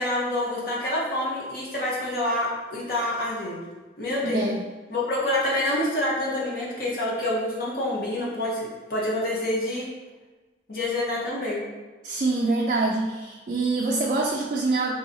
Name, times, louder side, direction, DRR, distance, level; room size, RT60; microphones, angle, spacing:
voice 1, 0.0-3.6 4.0-4.5 4.9-9.9 10.7-11.6, left 1 dB, 55° left, -5 dB, 0.9 m, -27 dB
voice 2, 4.2-4.6 12.0-14.9, right 3 dB, 45° right, -2 dB, 0.3 m, -25 dB
3.7 x 2.7 x 2.7 m, 1.3 s
head